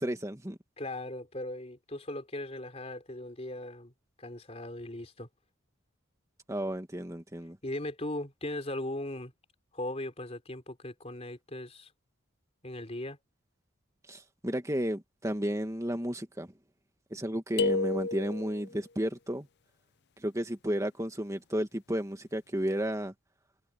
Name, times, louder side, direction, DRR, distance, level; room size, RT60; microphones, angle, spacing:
voice 1, 0.0-0.6 6.5-7.6 14.1-16.5 17.1-19.5 20.2-23.1, equal, 15° right, 2.1 m, -33 dB
voice 2, 0.8-3.9 4.2-5.3 7.6-9.3 9.7-11.9 12.6-13.2, left 1 dB, 30° left, 3.9 m, -38 dB
sound 1, 17.6-18.7, left 3 dB, 55° left, 0.5 m, -30 dB
head